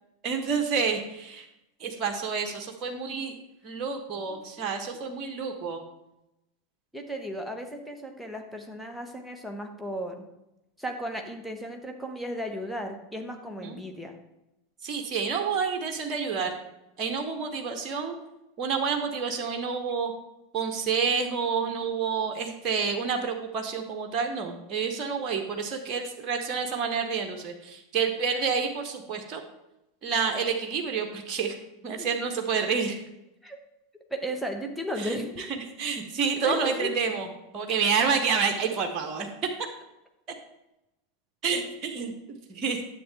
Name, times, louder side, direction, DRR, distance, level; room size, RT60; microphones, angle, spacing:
voice 1, 0.2-1.5 1.8-3.3 3.6-5.8 13.6-13.8 14.8-16.6 17.0-18.2 18.6-20.1 20.5-29.4 30.0-31.6 31.8-33.0 35.0-37.3 37.5-39.3 39.6-39.7 41.4-42.1 42.5-42.8, right 5 dB, 35° right, 4 dB, 1.1 m, -29 dB
voice 2, 6.9-10.3 10.8-14.1 32.0-32.1 33.4-33.6 34.1-35.4 36.4-36.9, equal, ahead, 3 dB, 1.2 m, -35 dB
10.0 x 7.4 x 3.4 m, 0.91 s
figure-of-eight pair, 85°, 0 cm